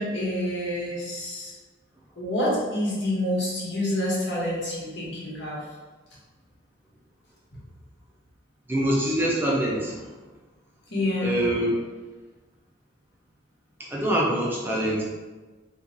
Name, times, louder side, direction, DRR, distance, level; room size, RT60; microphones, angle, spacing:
voice 1, 0.0-1.5 2.2-5.6 7.5-7.6 10.9-11.4, left 1 dB, 70° left, -6 dB, 1.2 m, -27 dB
voice 2, 8.7-9.9 11.2-11.7 13.9-15.0, right 1 dB, 10° right, -4 dB, 0.4 m, -24 dB
2.8 x 2.3 x 3.8 m, 1.2 s
head